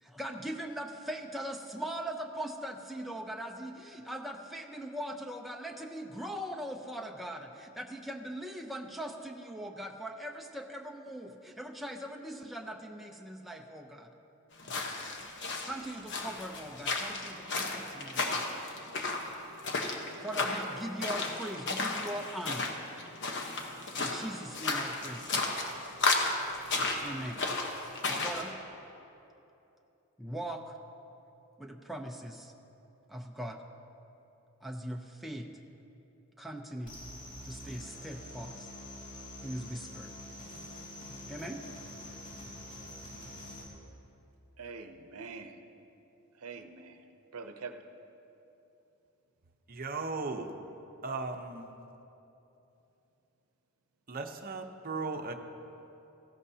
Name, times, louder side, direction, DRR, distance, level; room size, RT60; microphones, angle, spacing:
voice 1, 0.0-14.1 15.6-18.4 20.2-22.6 23.9-25.3 27.0-27.5 28.1-28.5 30.2-30.8 31.6-32.5 33.1-33.6 34.6-35.5 36.4-37.0 37.4-38.7 39.4-40.1 41.3-41.6, right 1 dB, ahead, 0.5 m, -40 dB
sound 1, 14.6-28.5, left 3 dB, 55° left, 1.1 m, -34 dB
sound 2, 36.8-43.6, left 1 dB, 35° left, 2.3 m, -46 dB
voice 2, 44.6-45.6 46.3-47.8, right 4 dB, 85° right, 0.7 m, -45 dB
voice 3, 49.7-50.5 51.0-51.7 54.1-55.3, right 3 dB, 40° right, 0.8 m, -36 dB
16.5 x 14.5 x 2.8 m
head